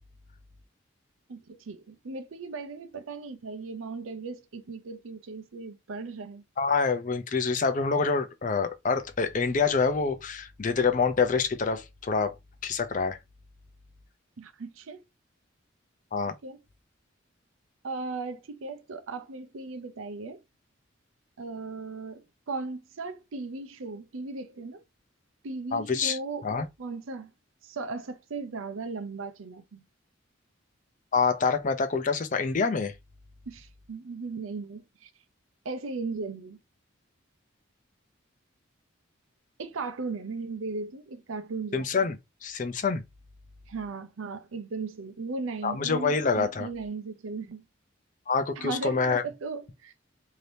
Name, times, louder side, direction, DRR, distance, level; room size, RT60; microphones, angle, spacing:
voice 1, 1.3-6.4 14.4-15.0 16.4-16.6 17.8-20.4 21.4-24.8 25.4-26.5 26.8-27.3 27.6-29.8 33.5-35.1 35.6-36.6 39.6-42.0 43.7-47.6 48.6-49.9, right 3 dB, 90° right, 0.6 m, -37 dB
voice 2, 6.6-12.4 12.6-13.2 16.1-16.3 25.7-26.2 26.4-26.6 31.1-32.9 41.7-42.2 42.4-43.0 45.6-46.7 48.3-49.2, left 4 dB, 40° left, 0.5 m, -26 dB
2.8 x 2.7 x 3.3 m
head